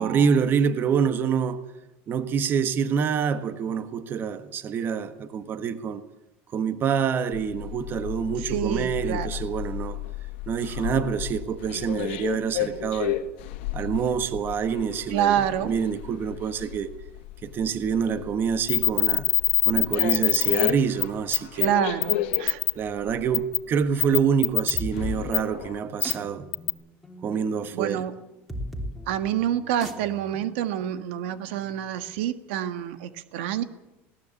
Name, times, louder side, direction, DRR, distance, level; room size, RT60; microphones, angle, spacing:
voice 1, 0.0-1.6 2.1-6.0 6.5-10.0 10.5-13.2 13.7-16.9 17.4-19.3 19.6-21.7 22.7-26.5 27.2-28.1, right 7 dB, 35° right, 1.5 m, -26 dB
sound 1, 7.3-25.8, left 13 dB, 85° left, 1.9 m, -34 dB
voice 2, 8.5-9.3 15.1-15.7 21.5-22.6 27.7-28.2 29.1-33.6, right 10 dB, 85° right, 1.6 m, -27 dB
sound 2, 18.7-20.7 21.0-21.1 21.3-21.7 22.0-22.7 23.3-23.6 24.0-24.8 25.3-25.4 26.0-26.1 26.5-26.7, left 13 dB, 45° left, 1.0 m, -22 dB
sound 3, 24.7-32.1, equal, ahead, 3.0 m, -39 dB
19.5 x 17.5 x 8.4 m
supercardioid pair, 135°, 6 cm